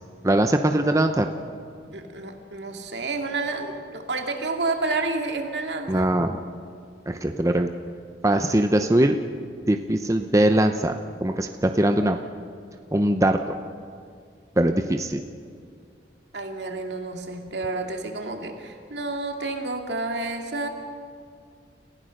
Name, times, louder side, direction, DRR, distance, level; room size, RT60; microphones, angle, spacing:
voice 1, 0.2-1.3 5.9-6.4 7.1-7.7 8.2-9.2 9.7-10.9 11.2-12.2 12.9-13.4 14.6-15.2, right 1 dB, 15° right, 6 dB, 0.7 m, -21 dB
voice 2, 1.9-6.1 16.3-20.7, right 3 dB, 70° right, 3 dB, 2.4 m, -30 dB
29.5 x 16.0 x 6.5 m, 2.2 s
head